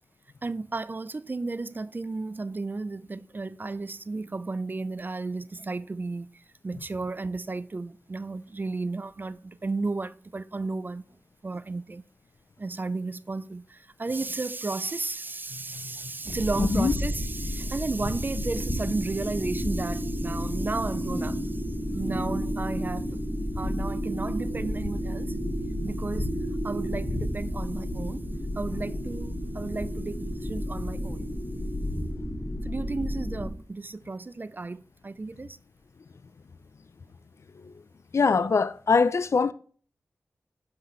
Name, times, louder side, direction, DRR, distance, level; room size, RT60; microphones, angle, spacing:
voice 1, 0.4-6.3 6.6-11.0 11.4-12.0 12.6-21.6 21.9-23.2 23.6-25.3 25.8-26.3 26.6-28.2 28.6-31.2 32.6-35.6, right 3 dB, 35° right, 0.4 m, -33 dB
sound 1, 16.2-33.5, equal, 35° left, 1.8 m, -31 dB
voice 2, 16.6-16.9 37.6-37.7 38.1-39.5, left 4 dB, 60° left, 0.4 m, -22 dB
7.9 x 5.5 x 3.1 m
cardioid pair, 45°, 5 cm